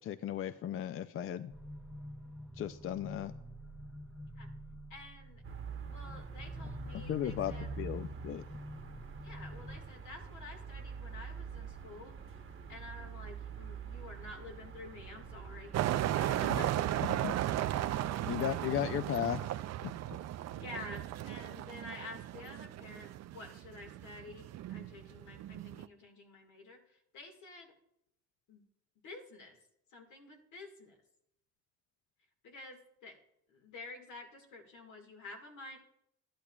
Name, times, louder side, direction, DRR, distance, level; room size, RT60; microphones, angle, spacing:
voice 1, 0.0-1.5 2.6-3.3 7.1-8.4 16.5-16.6 17.2-17.3 18.3-19.4 19.8-19.9, left 11 dB, 45° left, 12 dB, 0.4 m, -35 dB
sound 1, 1.5-9.8, equal, ahead, 0.6 m, -48 dB
voice 2, 4.9-5.4 5.9-7.8 9.2-12.4 12.7-16.9 17.8-18.2 20.5-27.8 28.5-28.6 29.0-29.6 29.9-31.0 32.4-33.2 33.5-35.8, left 3 dB, 80° left, 3 dB, 1.9 m, -50 dB
sound 2, 5.4-18.4, right 5 dB, 45° right, 1.0 m, -46 dB
sound 3, 15.7-25.9, right 13 dB, 60° right, 0.4 m, -36 dB
12.0 x 10.5 x 2.3 m, 0.76 s
cardioid pair, 90°, 30 cm